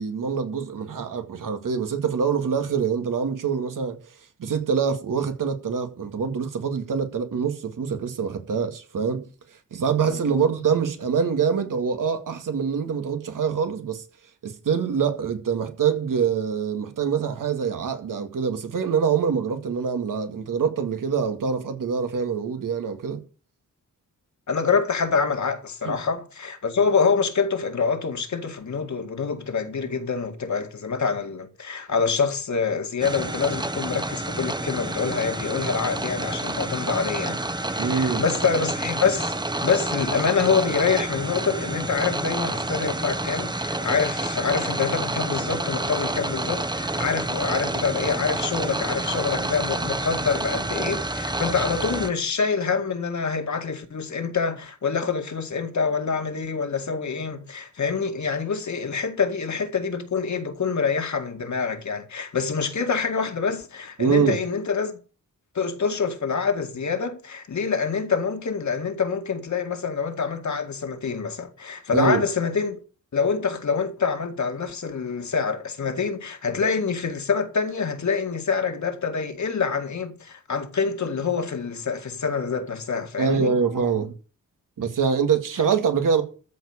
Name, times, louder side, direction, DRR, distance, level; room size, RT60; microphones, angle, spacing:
voice 1, 0.0-4.0 4.4-9.3 9.7-14.0 14.4-23.2 25.8-26.0 37.8-38.2 64.0-64.4 71.9-72.2 83.2-84.1 84.8-86.2, right 6 dB, 80° right, 2.1 m, -25 dB
voice 2, 10.1-10.4 24.5-37.4 37.7-39.3 39.6-65.0 65.5-72.8 73.1-83.6, left 5 dB, 60° left, 2.1 m, -26 dB
sound 1, 33.0-52.1, right 2 dB, 15° right, 1.0 m, -29 dB
13.5 x 5.1 x 8.4 m
wide cardioid pair, 90°, 32 cm